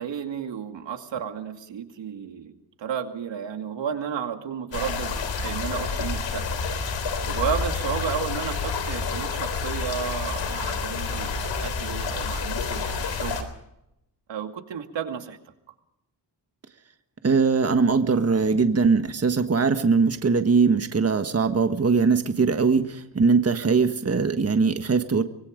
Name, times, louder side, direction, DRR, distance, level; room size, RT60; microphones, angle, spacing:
voice 1, 0.0-2.5 2.8-6.4 7.2-13.5 14.3-15.4, right 7 dB, 80° right, 6 dB, 2.4 m, -32 dB
sound 1, 4.7-13.4, left 4 dB, 85° left, 3.8 m, -29 dB
voice 2, 17.2-25.2, right 5 dB, 35° right, 8 dB, 1.5 m, -21 dB
25.0 x 20.5 x 5.2 m, 0.81 s
cardioid pair, 85°, 43 cm